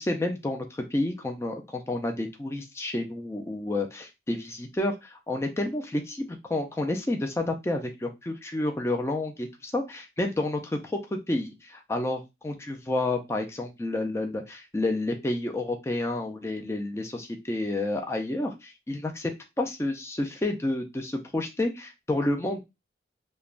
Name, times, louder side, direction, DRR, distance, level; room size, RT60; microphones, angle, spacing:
voice 1, 0.0-19.3 19.6-22.6, left 2 dB, 15° left, 3 dB, 0.4 m, -30 dB
3.2 x 2.2 x 2.4 m, 0.23 s
head